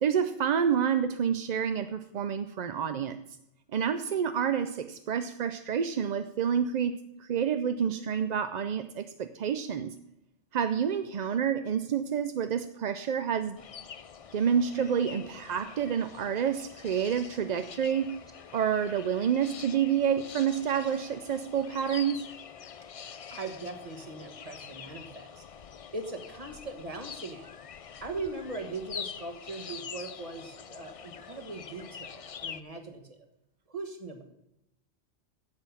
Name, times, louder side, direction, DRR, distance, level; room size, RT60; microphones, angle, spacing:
voice 1, 0.0-3.2 3.7-9.9 10.5-13.6 14.3-18.1 18.5-22.2, right 8 dB, 50° right, 9 dB, 0.5 m, -28 dB
sound 1, 13.6-32.6, left 7 dB, 50° left, 0.4 m, -45 dB
voice 2, 23.3-25.4 25.9-27.5 28.0-33.2 33.7-34.2, right 3 dB, 30° right, 5 dB, 1.5 m, -40 dB
9.7 x 7.7 x 7.3 m, 0.87 s
omnidirectional pair, 1.2 m